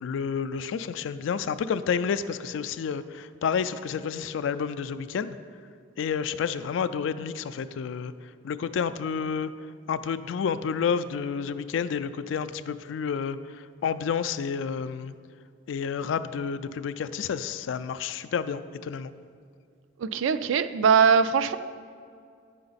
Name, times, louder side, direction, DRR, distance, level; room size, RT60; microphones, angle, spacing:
voice 1, 0.0-5.4 6.0-8.1 8.4-9.5 9.9-15.2 15.7-19.1, left 6 dB, 75° left, 13 dB, 0.3 m, -30 dB
voice 2, 20.0-21.6, right 6 dB, 85° right, 13 dB, 0.3 m, -21 dB
8.5 x 5.8 x 4.0 m, 2.3 s
head